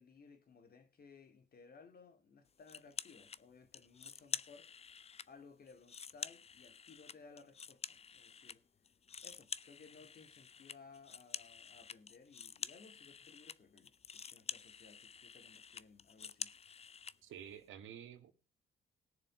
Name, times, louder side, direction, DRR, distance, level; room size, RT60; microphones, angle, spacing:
voice 1, 0.0-4.8 5.3-8.6 9.2-16.5, left 4 dB, 50° left, 2.4 m, -60 dB
sound 1, 2.7-3.4 3.7-5.3 5.7-8.6 8.8-17.2, left 6 dB, 30° left, 0.5 m, -48 dB
voice 2, 17.2-18.3, right 9 dB, 85° right, 2.0 m, -50 dB
18.5 x 6.8 x 5.0 m
cardioid pair, 90°, 20 cm